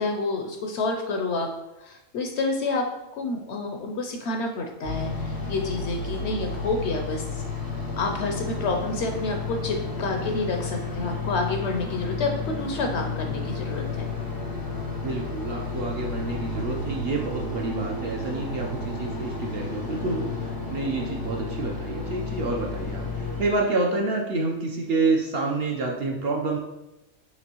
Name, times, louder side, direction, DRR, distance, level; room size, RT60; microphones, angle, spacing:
voice 1, 0.0-1.5 1.8-7.4 8.0-14.1, left 3 dB, 65° left, 3 dB, 0.7 m, -29 dB
sound 1, 4.8-23.5, left 3 dB, 25° left, 0.5 m, -32 dB
voice 2, 14.8-26.6, right 3 dB, 60° right, 0 dB, 0.7 m, -28 dB
6.0 x 3.0 x 2.9 m, 0.95 s
omnidirectional pair, 1.4 m